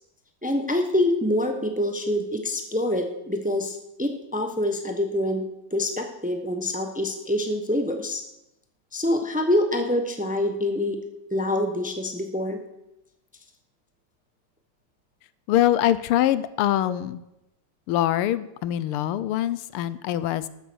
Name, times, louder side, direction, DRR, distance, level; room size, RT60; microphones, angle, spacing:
voice 1, 0.4-5.4 5.7-8.2 8.9-11.0 11.3-12.6, left 1 dB, 15° right, 5 dB, 0.3 m, -25 dB
voice 2, 15.5-17.2 17.9-20.5, left 12 dB, 85° left, 16 dB, 1.6 m, -23 dB
13.0 x 9.1 x 6.2 m, 0.87 s
omnidirectional pair, 2.4 m